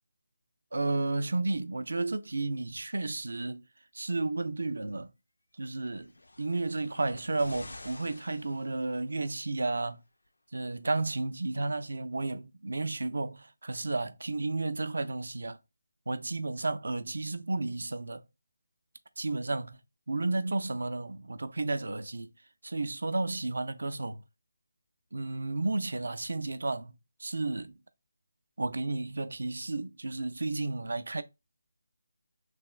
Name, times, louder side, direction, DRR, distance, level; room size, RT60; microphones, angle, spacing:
voice 1, 0.7-3.7 3.9-5.1 5.6-6.1 6.4-10.0 10.5-15.6 16.1-18.2 19.2-19.8 20.1-22.3 22.6-24.2 25.1-27.8 28.6-31.2, right 2 dB, 70° right, 0.4 m, -32 dB
sound 1, 5.9-9.3 10.3-10.4, left 2 dB, 75° left, 0.5 m, -49 dB
3.4 x 2.4 x 3.0 m
figure-of-eight pair, 155°, 0 cm